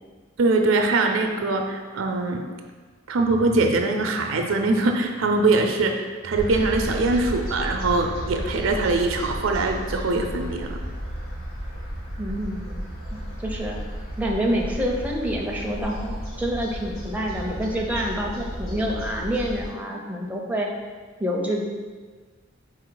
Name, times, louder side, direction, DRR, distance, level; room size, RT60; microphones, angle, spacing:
voice 1, 0.4-2.4 3.1-10.8, right 3 dB, 85° right, 3 dB, 0.5 m, -22 dB
sound 1, 6.3-19.7, equal, 85° left, 1.5 m, -33 dB
voice 2, 12.2-12.8 13.1-13.8 14.2-20.7 21.2-21.6, equal, 10° right, -1 dB, 0.4 m, -27 dB
4.5 x 3.1 x 3.9 m, 1.5 s
head